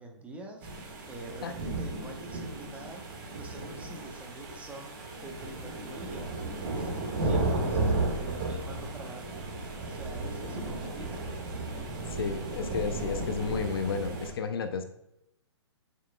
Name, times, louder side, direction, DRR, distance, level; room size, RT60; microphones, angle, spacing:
voice 1, 0.0-6.9 7.2-9.5 9.8-11.2, right 2 dB, 10° right, 2 dB, 0.9 m, -45 dB
sound 1, 0.6-14.3, right 2 dB, 45° right, 1.7 m, -34 dB
voice 2, 12.1-14.9, left 5 dB, 55° left, 8 dB, 0.7 m, -32 dB
7.0 x 6.6 x 2.3 m, 0.84 s
figure-of-eight pair, 120°, 15 cm